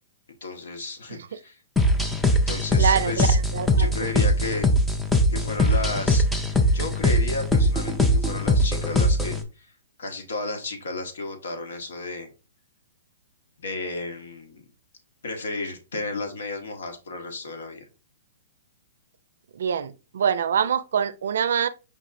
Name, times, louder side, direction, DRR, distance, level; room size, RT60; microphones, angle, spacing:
voice 1, 0.4-1.6 2.3-3.4 3.8-4.7 5.3-6.2 6.7-9.7 10.0-12.3 13.6-14.6 15.2-17.8, left 3 dB, 85° left, 1.1 m, -33 dB
sound 1, 1.8-9.4, left 1 dB, 5° left, 0.4 m, -21 dB
voice 2, 2.8-4.1 19.5-21.7, right 7 dB, 70° right, 0.4 m, -25 dB
5.2 x 3.2 x 2.5 m
hypercardioid pair, 165°, 0 cm